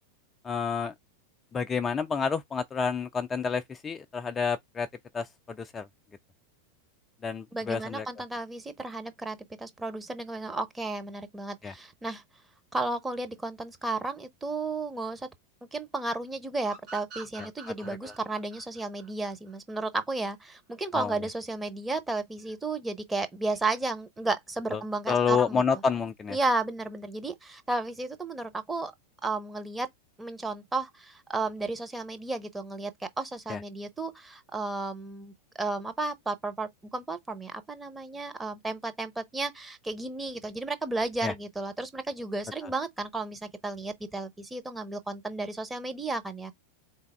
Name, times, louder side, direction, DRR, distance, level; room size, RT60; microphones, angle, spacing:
voice 1, 0.4-0.9 1.5-4.9 5.1-5.9 7.2-8.1 11.6-11.7 17.9-18.1 20.9-21.1 24.7-24.8 25.1-26.4 33.5-33.6 41.2-41.3, left 5 dB, 20° left, 0.4 m, -29 dB
voice 2, 7.5-12.2 12.7-15.3 15.7-25.6 26.3-28.9 29.2-29.9 30.2-46.5, right 3 dB, 10° right, 0.8 m, -33 dB
sound 1, 16.7-20.0, right 4 dB, 40° right, 1.9 m, -46 dB
3.9 x 3.4 x 3.3 m
figure-of-eight pair, 90°, 0 cm